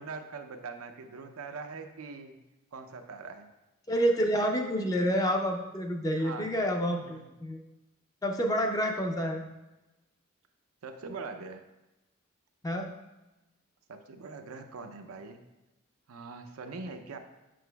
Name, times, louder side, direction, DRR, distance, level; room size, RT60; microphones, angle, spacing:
voice 1, 0.0-2.4 2.7-3.5 6.1-6.5 7.0-7.3 10.8-11.6 13.9-15.4 16.1-17.2, right 4 dB, 80° right, 6 dB, 0.5 m, -42 dB
voice 2, 3.9-7.6 8.2-9.4 12.6-12.9, equal, 15° left, 3 dB, 0.5 m, -28 dB
7.6 x 5.8 x 2.3 m, 1.0 s
head